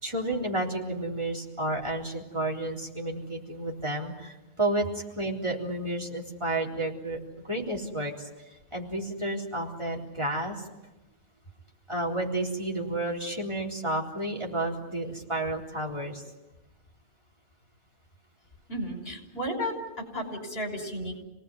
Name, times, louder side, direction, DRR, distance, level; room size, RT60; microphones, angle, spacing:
voice 1, 0.0-7.2 7.4-8.3 8.7-10.7 11.9-16.2, right 1 dB, 25° right, -1 dB, 3.8 m, -31 dB
voice 2, 18.7-21.2, equal, 60° left, 3 dB, 6.0 m, -33 dB
28.0 x 18.5 x 9.6 m, 1.0 s
omnidirectional pair, 1.1 m